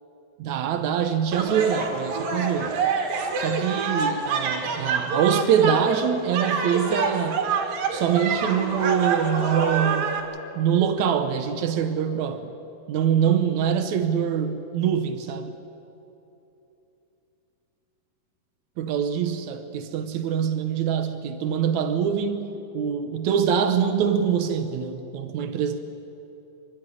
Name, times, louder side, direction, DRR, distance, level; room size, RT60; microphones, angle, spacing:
voice 1, 0.4-2.8 3.4-7.4 7.9-10.2 10.5-12.5 12.9-15.6 18.8-25.8, right 8 dB, 80° right, 9 dB, 1.6 m, -24 dB
sound 1, 1.3-10.2, right 5 dB, 65° right, 3.6 m, -26 dB
27.5 x 13.0 x 9.8 m, 2.9 s
omnidirectional pair, 4.6 m